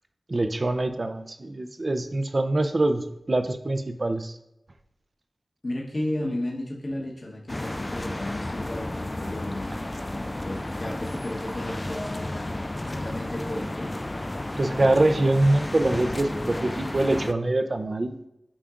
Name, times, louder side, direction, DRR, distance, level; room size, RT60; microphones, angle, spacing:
voice 1, 0.3-4.4 14.6-18.1, right 2 dB, 45° right, 8 dB, 0.5 m, -24 dB
voice 2, 5.6-14.0, left 1 dB, 45° left, -3 dB, 1.1 m, -34 dB
sound 1, 7.5-17.3, left 1 dB, 25° left, 0.3 m, -32 dB
8.5 x 5.9 x 2.5 m, 0.86 s
wide cardioid pair, 85°, 0 cm